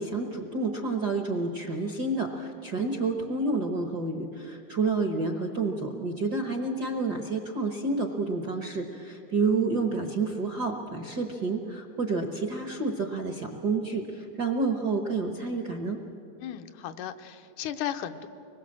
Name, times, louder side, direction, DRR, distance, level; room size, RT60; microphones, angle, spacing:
voice 1, 0.0-16.0, right 3 dB, 60° right, 4 dB, 1.0 m, -29 dB
voice 2, 16.4-18.3, left 10 dB, 85° left, 7 dB, 2.3 m, -35 dB
25.0 x 21.0 x 7.4 m, 2.8 s
omnidirectional pair, 3.5 m